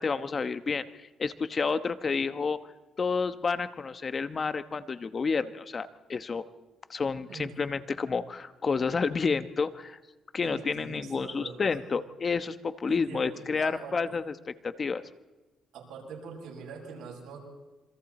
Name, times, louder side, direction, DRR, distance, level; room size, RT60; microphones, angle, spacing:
voice 1, 0.0-2.7 3.0-6.4 6.9-10.0 10.3-14.3 14.6-15.0, left 5 dB, 40° left, 12 dB, 1.1 m, -30 dB
voice 2, 10.4-12.0 12.9-14.0 15.7-17.4, right 5 dB, 80° right, -1 dB, 7.8 m, -43 dB
27.5 x 25.5 x 4.3 m, 1.2 s
cardioid pair, 90°, 0 cm